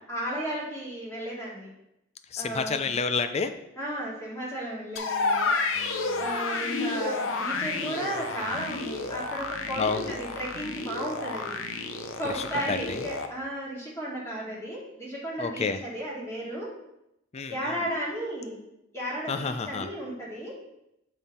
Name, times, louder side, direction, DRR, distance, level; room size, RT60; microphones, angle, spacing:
voice 1, 0.1-1.7 2.4-3.0 3.8-5.5 6.2-11.6 12.2-16.7 17.5-18.6 18.9-20.5, right 1 dB, 15° left, -6 dB, 2.4 m, -34 dB
voice 2, 2.3-3.5 5.7-6.3 9.8-10.1 12.3-13.1 15.4-15.8 17.3-17.8 19.3-19.9, left 5 dB, 30° left, 8 dB, 0.4 m, -30 dB
sound 1, 5.0-13.3, left 3 dB, 65° left, 0.7 m, -31 dB
7.6 x 5.4 x 4.2 m, 0.84 s
head